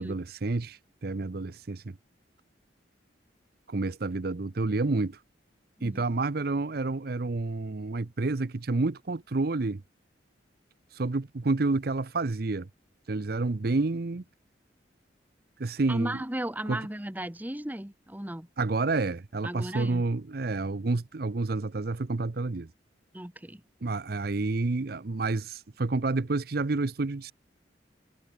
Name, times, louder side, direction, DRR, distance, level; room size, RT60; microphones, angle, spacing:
voice 1, 0.0-2.0 3.7-5.2 5.8-9.8 10.9-12.7 13.1-14.2 15.6-16.2 16.7-16.8 18.6-22.7 23.8-27.3, right 3 dB, 55° right, 0.7 m, -29 dB
voice 2, 15.9-18.5 19.4-20.0 23.1-23.6, right 1 dB, 10° right, 1.1 m, -35 dB
head